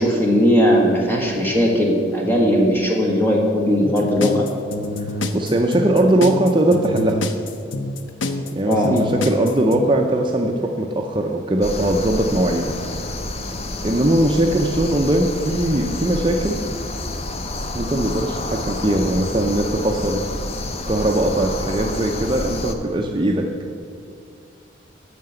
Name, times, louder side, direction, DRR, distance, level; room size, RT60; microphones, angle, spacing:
voice 1, 0.0-4.4 8.7-9.0, equal, 10° left, -2 dB, 1.5 m, -18 dB
sound 1, 3.8-9.9, left 2 dB, 85° left, 0.7 m, -27 dB
voice 2, 5.3-7.2 8.5-12.7 13.8-16.6 17.7-20.2 20.9-23.5, right 1 dB, 25° right, 1 dB, 0.5 m, -20 dB
sound 2, 11.6-22.7, left 2 dB, 35° left, 0.6 m, -29 dB
9.3 x 5.8 x 7.7 m, 2.2 s
head